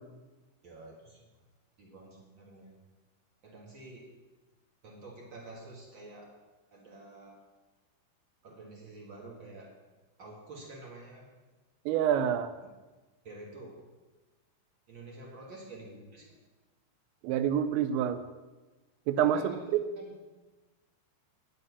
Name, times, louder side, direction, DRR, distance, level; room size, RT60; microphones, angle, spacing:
voice 1, 0.6-1.4 1.8-2.8 3.4-4.1 4.8-6.4 6.7-7.4 8.4-9.7 10.2-11.3 13.2-13.8 14.9-16.4 19.2-20.1, right 2 dB, 65° right, -2 dB, 1.2 m, -49 dB
voice 2, 11.9-12.5 17.2-18.2 19.1-19.5, right 9 dB, 85° right, 10 dB, 3.0 m, -27 dB
10.0 x 6.9 x 8.1 m, 1.2 s
omnidirectional pair, 5.1 m